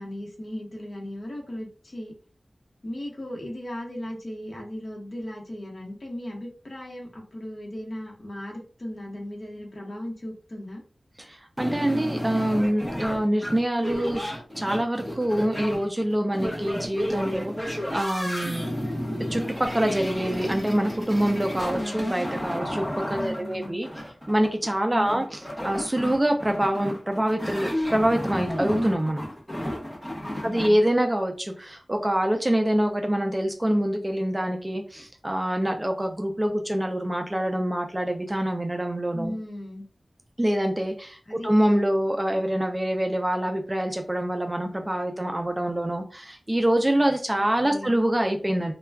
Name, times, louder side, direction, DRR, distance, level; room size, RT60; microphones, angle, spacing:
voice 1, 0.0-2.1 2.8-10.8 23.1-23.8 24.9-25.3 30.2-30.8 39.1-39.9 41.3-41.5 47.6-48.0, left 1 dB, 45° left, -2 dB, 0.9 m, -36 dB
voice 2, 11.2-18.7 19.3-23.9 24.3-29.2 30.4-39.3 40.4-48.7, right 1 dB, 20° right, 4 dB, 0.3 m, -25 dB
sound 1, 11.6-30.7, equal, 5° left, 0.7 m, -32 dB
2.2 x 2.2 x 3.4 m, 0.40 s
wide cardioid pair, 85°, 0 cm